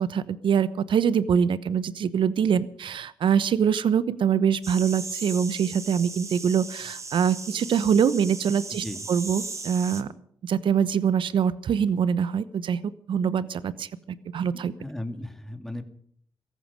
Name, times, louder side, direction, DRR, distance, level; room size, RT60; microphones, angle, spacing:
voice 1, 0.0-10.1 10.4-12.8 13.1-14.7, right 7 dB, 70° right, 16 dB, 1.0 m, -24 dB
sound 1, 4.6-10.0, right 3 dB, 35° right, 1.9 m, -37 dB
voice 2, 14.8-15.8, left 1 dB, 5° left, 6 dB, 2.5 m, -35 dB
17.5 x 14.5 x 5.2 m, 0.64 s
supercardioid pair, 50°, 9 cm